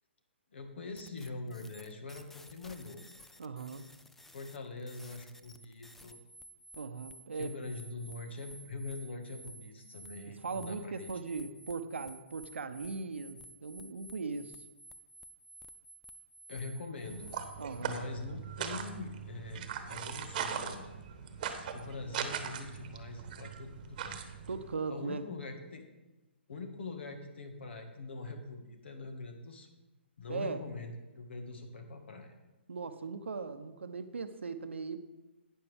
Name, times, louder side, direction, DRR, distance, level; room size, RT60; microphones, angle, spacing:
voice 1, 0.5-3.0 4.3-6.2 7.3-11.1 16.5-17.3 17.8-20.9 21.7-24.2 24.9-25.9 26.5-29.7 30.2-32.3, left 3 dB, 70° left, 5 dB, 1.8 m, -43 dB
sound 1, 1.0-17.8, right 1 dB, 5° left, 0.4 m, -54 dB
voice 2, 3.4-3.9 6.8-7.5 10.3-14.6 17.6-18.0 24.5-25.2 30.3-30.6 32.7-35.0, right 4 dB, 80° right, 9 dB, 0.8 m, -39 dB
sound 2, 17.0-24.7, right 8 dB, 45° right, 1.1 m, -40 dB
sound 3, 19.3-25.5, left 2 dB, 35° left, 2.4 m, -61 dB
11.5 x 9.4 x 3.5 m, 1.1 s
hypercardioid pair, 140°, 6 cm